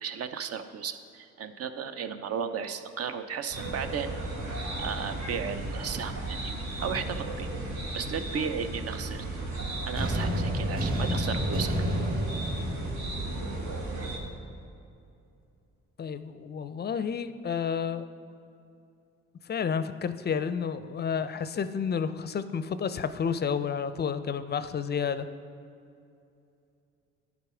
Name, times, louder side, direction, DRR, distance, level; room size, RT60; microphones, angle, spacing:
voice 1, 0.0-4.1 4.8-6.5 6.8-7.5 7.9-9.2 9.8-11.7, right 7 dB, 55° right, 10 dB, 0.6 m, -34 dB
sound 1, 3.5-14.2, right 2 dB, 75° right, 1.4 m, -35 dB
sound 2, 10.0-13.9, equal, 30° right, 1.4 m, -30 dB
voice 2, 16.0-18.1 19.5-25.3, left 6 dB, 35° left, 12 dB, 0.4 m, -30 dB
10.5 x 3.8 x 4.9 m, 2.6 s
supercardioid pair, 55°, 29 cm